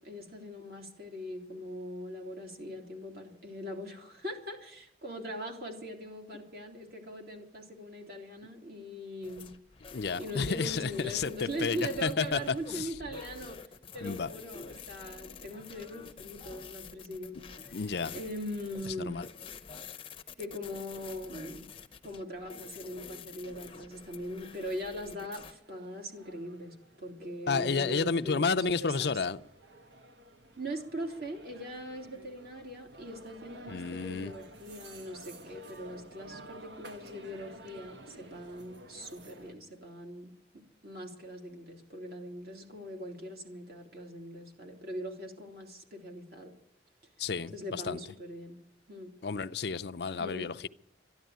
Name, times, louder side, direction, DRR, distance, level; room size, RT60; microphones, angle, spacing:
voice 1, 0.0-9.5 9.9-13.6 13.9-17.8 18.1-19.2 20.4-21.7 22.0-29.2 30.6-46.5 47.5-48.6 48.9-49.1 50.2-50.5, equal, 55° right, 3.1 m, -41 dB
sound 1, 9.2-25.5, left 5 dB, 30° left, 0.7 m, -48 dB
voice 2, 9.9-11.3 11.6-12.4 12.7-12.9 14.0-14.3 17.7-18.2 19.1-19.3 27.5-29.4 33.7-34.3 47.2-48.0 49.2-50.7, left 5 dB, 65° left, 0.6 m, -31 dB
sound 2, 23.5-39.5, right 2 dB, 75° right, 1.4 m, -53 dB
13.5 x 11.5 x 9.3 m
head